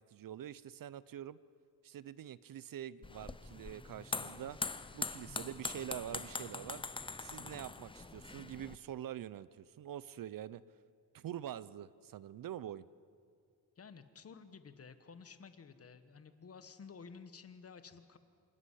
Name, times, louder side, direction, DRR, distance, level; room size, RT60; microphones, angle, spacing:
voice 1, 0.0-1.4 1.8-4.6 4.9-6.8 7.2-10.6 11.1-12.8, right 11 dB, 55° right, 19 dB, 0.6 m, -45 dB
sound 1, 3.0-8.8, left 3 dB, 15° left, 0.6 m, -43 dB
voice 2, 13.8-18.2, left 5 dB, 35° left, 11 dB, 1.3 m, -53 dB
27.0 x 13.0 x 9.9 m, 2.3 s
wide cardioid pair, 145°, 40 cm